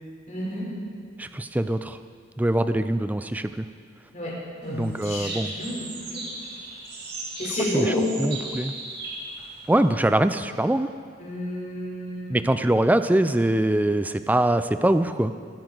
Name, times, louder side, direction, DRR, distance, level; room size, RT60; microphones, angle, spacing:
voice 1, 0.3-0.7 4.1-4.4 4.6-6.2 7.4-8.0 11.2-12.5, equal, 40° left, -4 dB, 3.6 m, -30 dB
voice 2, 1.2-2.0 2.4-3.6 4.7-5.5 7.7-7.9 8.2-8.7 9.7-10.9 12.3-15.3, right 1 dB, 10° right, 11 dB, 0.3 m, -23 dB
sound 1, 4.6-10.4, right 3 dB, 50° right, 2.0 m, -37 dB
21.5 x 9.2 x 4.0 m, 2.1 s
head